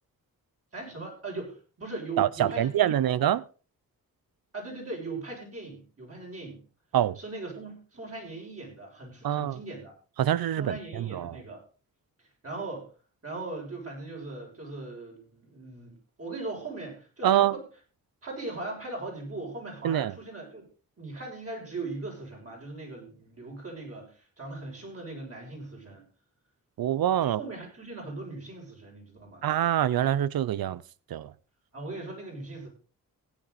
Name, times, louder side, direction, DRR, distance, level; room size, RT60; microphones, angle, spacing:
voice 1, 0.7-3.1 4.5-6.6 7.1-9.9 10.5-11.6 12.4-12.9 13.2-17.6 18.2-20.7 21.0-26.0 27.2-29.4 31.7-32.7, right 3 dB, 40° right, 7.0 m, -39 dB
voice 2, 2.2-3.4 6.9-7.2 9.2-9.6 10.2-11.4 17.2-17.5 19.8-20.1 26.8-27.4 29.4-30.8 31.1-31.3, right 11 dB, 75° right, 0.7 m, -25 dB
15.5 x 10.0 x 4.1 m
cardioid pair, 95°, 36 cm